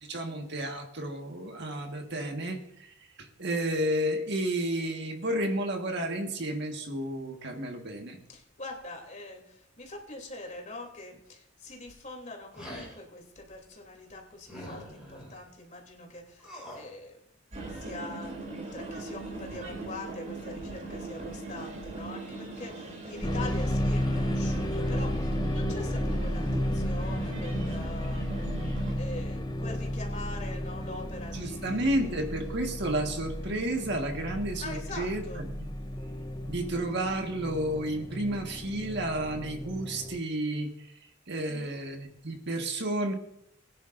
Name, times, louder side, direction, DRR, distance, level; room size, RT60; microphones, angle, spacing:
voice 1, 0.0-8.2 31.3-35.7 36.5-40.7 41.3-43.1, right 1 dB, 60° right, 4 dB, 1.6 m, -31 dB
voice 2, 8.3-17.2 17.7-28.6 28.9-32.3 34.6-35.5 41.4-41.8, left 2 dB, 40° left, 2 dB, 3.0 m, -43 dB
sound 1, 12.5-13.0 14.5-15.3 16.4-16.9, equal, 5° right, 6.0 m, -43 dB
sound 2, 17.5-28.9, right 2 dB, 40° right, 3.1 m, -40 dB
sound 3, 23.2-40.2, left 1 dB, 20° left, 0.7 m, -33 dB
21.5 x 10.5 x 2.6 m, 0.73 s
head